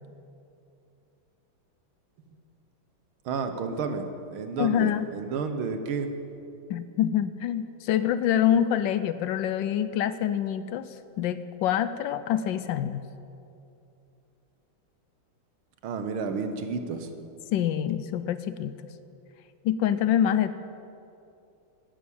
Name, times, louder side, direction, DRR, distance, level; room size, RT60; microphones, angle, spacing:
voice 1, 3.3-6.1 15.8-17.1, right 5 dB, 70° right, 7 dB, 1.8 m, -31 dB
voice 2, 4.6-5.1 6.7-10.9 11.2-13.0 17.5-18.7 19.6-20.5, left 10 dB, 75° left, 13 dB, 1.1 m, -26 dB
12.5 x 9.6 x 8.6 m, 2.7 s
omnidirectional pair, 2.4 m